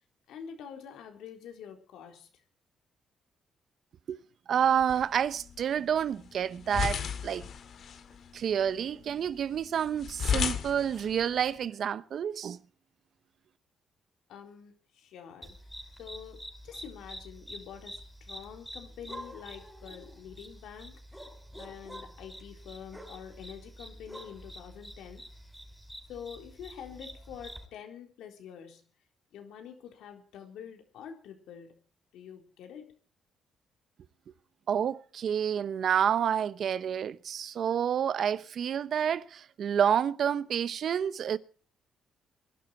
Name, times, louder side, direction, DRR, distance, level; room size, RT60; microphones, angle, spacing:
voice 1, 0.3-2.4 14.3-15.5 16.0-21.0 21.5-25.3 26.1-28.9 29.3-31.8 32.1-33.0, left 8 dB, 85° left, 4.0 m, -46 dB
voice 2, 4.5-7.5 8.3-12.6 34.7-41.4, right 8 dB, 60° right, 1.0 m, -29 dB
sound 1, 4.6-11.7, left 7 dB, 60° left, 2.2 m, -36 dB
sound 2, 15.4-27.7, equal, ahead, 5.6 m, -47 dB
21.5 x 12.0 x 4.5 m
cardioid pair, 90°, 0 cm